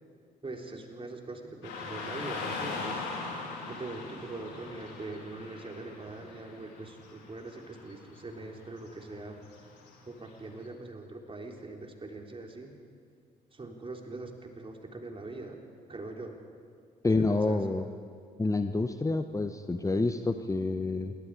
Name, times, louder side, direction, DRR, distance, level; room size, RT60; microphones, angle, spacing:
voice 1, 0.4-3.0 3.7-9.4 10.1-12.7 13.5-15.6 15.9-16.3 17.0-17.6, right 2 dB, 25° right, 2 dB, 3.6 m, -42 dB
Car passing by / Traffic noise roadway noise, 1.6-10.7, left 4 dB, 70° left, 4.2 m, -41 dB
voice 2, 17.0-17.9 18.4-21.2, left 3 dB, 15° left, 9 dB, 1.1 m, -28 dB
27.5 x 23.0 x 4.9 m, 2.1 s
figure-of-eight pair, 45°, 20 cm